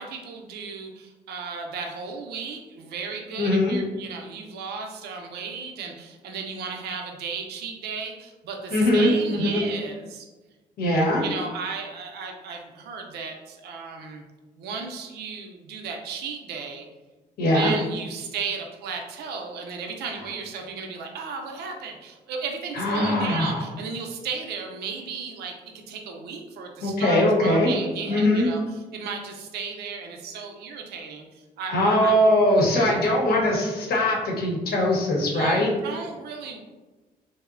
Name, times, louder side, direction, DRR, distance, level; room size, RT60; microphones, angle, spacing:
voice 1, 0.0-10.3 11.2-14.2 14.6-16.9 17.5-28.6 28.9-32.2 32.5-32.9 35.3-36.6, right 5 dB, 80° right, 2 dB, 0.4 m, -35 dB
voice 2, 3.4-3.8 8.7-9.6 10.8-11.2 17.4-17.7 22.7-23.6 26.8-27.7 28.1-28.5 31.7-35.7, left 1 dB, 70° left, -2 dB, 0.8 m, -21 dB
2.9 x 2.0 x 2.4 m, 1.2 s
cardioid pair, 70°, 17 cm